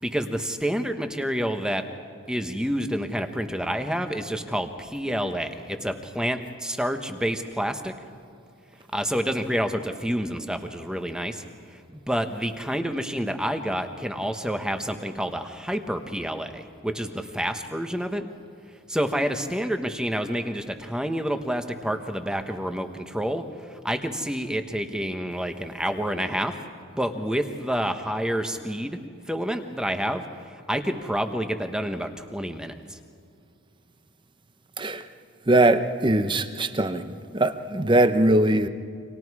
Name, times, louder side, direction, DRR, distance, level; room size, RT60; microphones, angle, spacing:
voice 1, 0.0-1.8 2.3-7.9 8.9-11.4 11.7-18.3 18.9-26.6 26.9-29.0 29.3-33.0, equal, 5° right, 7 dB, 1.1 m, -28 dB
voice 2, 35.5-38.7, right 1 dB, 20° right, 10 dB, 0.8 m, -21 dB
29.5 x 25.5 x 4.8 m, 2.5 s
head